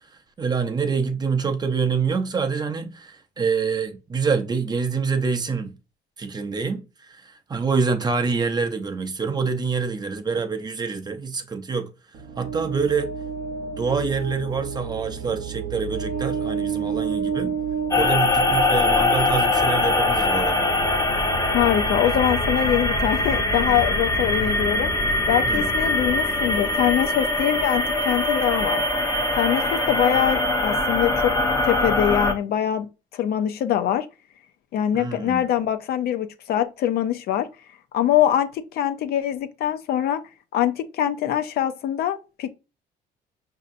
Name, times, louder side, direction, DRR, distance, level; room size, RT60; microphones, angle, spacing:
voice 1, 0.4-5.7 6.2-11.9 12.4-13.1 13.8-17.6 17.9-20.7 25.4-25.6 34.9-35.5, right 5 dB, 25° right, 0.6 m, -26 dB
sound 1, 12.1-19.1, right 7 dB, 65° right, 0.7 m, -30 dB
sound 2, 17.9-32.3, left 2 dB, 20° left, 0.6 m, -22 dB
voice 2, 21.5-24.9 25.3-28.8 29.3-31.3 31.6-32.9 33.1-34.1 34.7-37.5 37.9-40.2 40.5-42.5, left 11 dB, 65° left, 0.5 m, -23 dB
5.3 x 2.7 x 2.5 m
cardioid pair, 110°, 17 cm